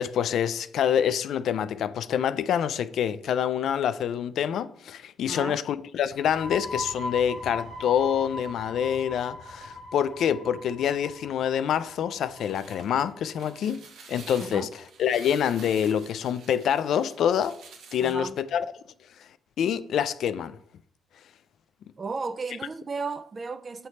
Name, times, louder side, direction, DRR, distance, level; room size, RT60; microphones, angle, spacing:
voice 1, 0.0-13.8 14.1-17.6 17.9-18.7 19.2-19.3 19.6-20.6, left 9 dB, 70° left, 0.3 m, -26 dB
voice 2, 5.3-5.6 14.4-14.7 18.0-18.4 22.0-23.9, right 4 dB, 35° right, 0.4 m, -34 dB
sound 1, 6.1-13.6, left 2 dB, 50° left, 0.7 m, -39 dB
sound 2, 12.1-18.3, right 5 dB, 75° right, 0.9 m, -49 dB
7.8 x 3.2 x 4.2 m
cardioid pair, 90°, 0 cm